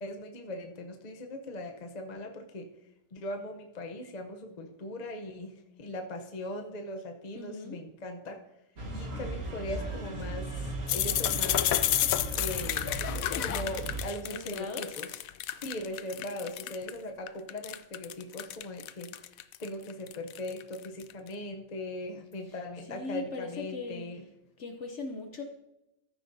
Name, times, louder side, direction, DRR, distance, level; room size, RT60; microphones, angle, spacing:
voice 1, 0.0-2.7 3.1-8.4 8.9-12.1 12.3-12.9 13.4-15.2 15.6-19.1 19.6-24.3, left 1 dB, 35° left, 4 dB, 0.8 m, -39 dB
voice 2, 7.4-7.8 14.2-14.9 22.9-24.1 24.6-25.4, left 3 dB, 60° left, 5 dB, 1.1 m, -39 dB
sound 1, 8.8-14.0, right 2 dB, 70° right, 2.0 m, -37 dB
sound 2, 10.9-16.9 17.3-21.1, left 12 dB, 85° left, 1.0 m, -31 dB
14.0 x 11.5 x 2.7 m, 0.91 s
omnidirectional pair, 1.4 m